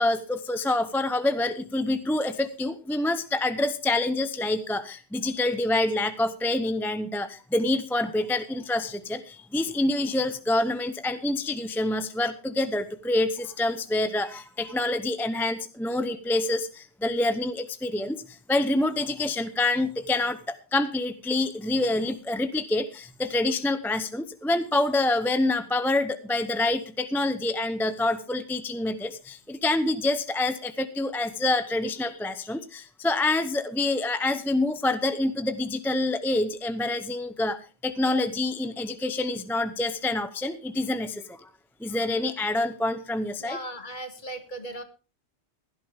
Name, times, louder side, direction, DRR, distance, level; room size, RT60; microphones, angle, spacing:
voice 1, 0.0-16.7 17.0-18.2 18.5-37.6 37.8-41.2 41.8-43.6, left 2 dB, ahead, 10 dB, 0.6 m, -27 dB
voice 2, 43.4-44.8, right 1 dB, 40° left, 7 dB, 1.9 m, -37 dB
16.0 x 12.0 x 3.7 m, 0.33 s
omnidirectional pair, 1.2 m